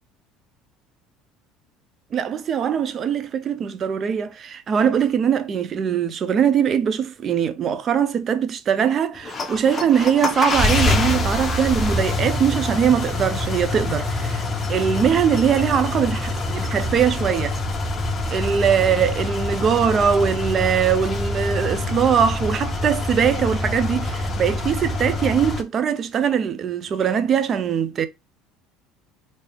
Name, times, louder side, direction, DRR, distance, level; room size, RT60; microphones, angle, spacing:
voice 1, 2.1-14.4 14.7-17.6 18.3-28.1, right 8 dB, 45° right, 0.6 m, -21 dB
sound 1, 9.2-25.6, left 2 dB, 25° left, 0.8 m, -25 dB
3.4 x 2.7 x 3.3 m
supercardioid pair, 90°, 0 cm